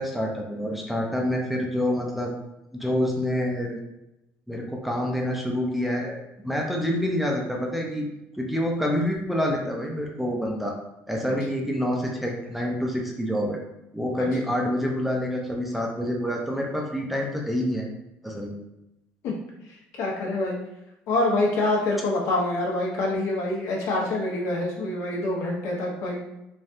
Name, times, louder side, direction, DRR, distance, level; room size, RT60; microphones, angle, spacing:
voice 1, 0.0-2.3 2.7-3.8 4.5-8.1 8.4-10.7 11.1-13.6 13.9-17.9 18.2-18.6, equal, ahead, 0 dB, 0.5 m, -27 dB
voice 2, 19.7-20.6 21.1-26.2, left 2 dB, 70° left, -2 dB, 0.9 m, -26 dB
3.4 x 2.3 x 2.6 m, 0.91 s
cardioid pair, 115°, 5 cm